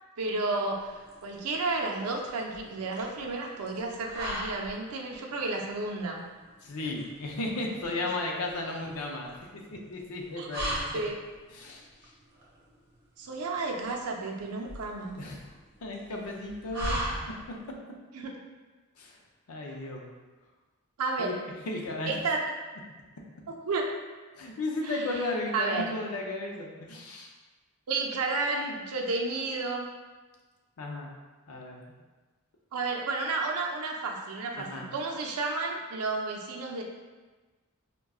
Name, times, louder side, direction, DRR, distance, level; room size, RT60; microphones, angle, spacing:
voice 1, 0.2-6.2 10.4-11.2 13.2-15.2 18.1-18.3 21.0-21.4 22.1-22.4 23.5-23.9 24.8-25.2 25.5-25.9 27.9-29.9 32.7-36.8, right 3 dB, 80° right, 1 dB, 0.5 m, -32 dB
sound 1, 0.7-17.7, equal, 50° right, 0.8 m, -40 dB
voice 2, 6.6-9.3 9.7-10.7 11.5-12.1 15.2-15.4 15.8-17.2 19.0-19.2 19.5-20.0 21.2-21.3 21.6-22.1 24.3-27.3 30.8-31.1 31.5-31.9 34.6-34.9, left 2 dB, 75° left, 0 dB, 0.6 m, -34 dB
4.7 x 2.2 x 2.3 m, 1.3 s
head